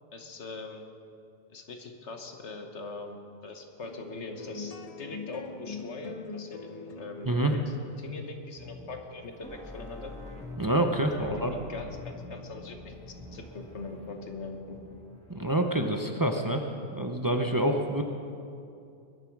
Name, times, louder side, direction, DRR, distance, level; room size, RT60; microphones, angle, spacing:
voice 1, 0.1-0.8 1.5-10.1 11.2-12.9 13.3-14.8, left 3 dB, 80° left, 4 dB, 1.6 m, -42 dB
sound 1, 3.8-10.5, left 4 dB, 40° left, 0.6 m, -44 dB
voice 2, 7.2-7.6 10.6-11.5 15.3-16.6 16.9-18.0, right 1 dB, 20° right, 4 dB, 0.7 m, -27 dB
sound 2, 8.5-15.5, left 2 dB, 5° left, 1.6 m, -46 dB
20.5 x 11.0 x 4.7 m, 2.5 s
omnidirectional pair, 1.2 m